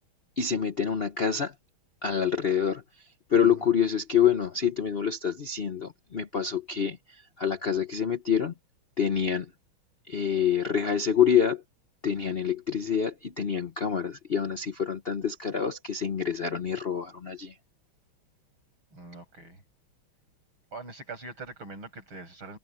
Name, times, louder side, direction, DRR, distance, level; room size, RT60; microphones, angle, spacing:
voice 1, 0.4-1.5 2.0-2.8 3.3-7.0 7.4-8.5 9.0-9.5 10.1-11.6 12.0-17.5, left 7 dB, 65° left, 0.5 m, -26 dB
voice 2, 18.9-19.6 20.7-22.6, right 3 dB, 65° right, 8.9 m, -43 dB
omnidirectional pair, 2.4 m